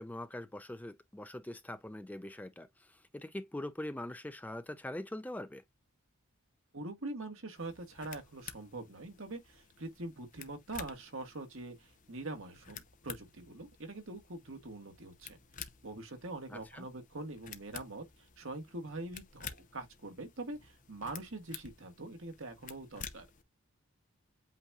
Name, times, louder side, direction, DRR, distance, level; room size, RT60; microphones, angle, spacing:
voice 1, 0.0-5.6 16.5-16.9, left 1 dB, 5° left, 0.4 m, -43 dB
voice 2, 6.7-15.4 15.8-23.3, right 2 dB, 65° right, 1.6 m, -44 dB
sound 1, 7.6-23.4, left 7 dB, 35° left, 0.7 m, -51 dB
8.2 x 2.8 x 2.3 m
head